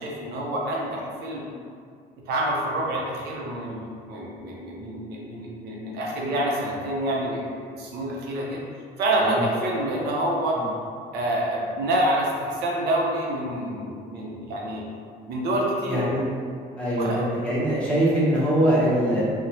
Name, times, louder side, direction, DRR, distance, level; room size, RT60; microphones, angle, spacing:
voice 1, 0.0-1.4 2.3-8.6 9.0-10.6 11.1-14.8 15.3-16.1 17.0-17.3, right 1 dB, 75° right, -3 dB, 0.5 m, -27 dB
voice 2, 15.9-16.2 16.8-19.2, right 1 dB, 5° left, -9 dB, 0.9 m, -23 dB
2.6 x 2.0 x 2.9 m, 2.2 s
cardioid pair, 110°, 17 cm